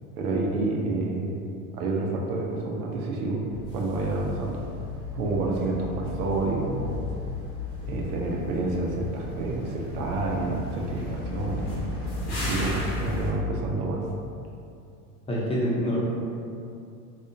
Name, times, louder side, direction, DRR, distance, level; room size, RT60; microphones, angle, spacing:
voice 1, 0.2-1.4 1.7-3.5 3.7-4.6 5.1-7.0 7.8-11.8 12.3-14.0, right 2 dB, 75° right, -1 dB, 0.8 m, -28 dB
sound 1, 3.5-13.3, left 2 dB, 75° left, 1.5 m, -35 dB
voice 2, 15.3-16.0, equal, 15° left, -6 dB, 0.9 m, -26 dB
4.0 x 2.5 x 2.8 m, 2.5 s
hypercardioid pair, 105°, 45 cm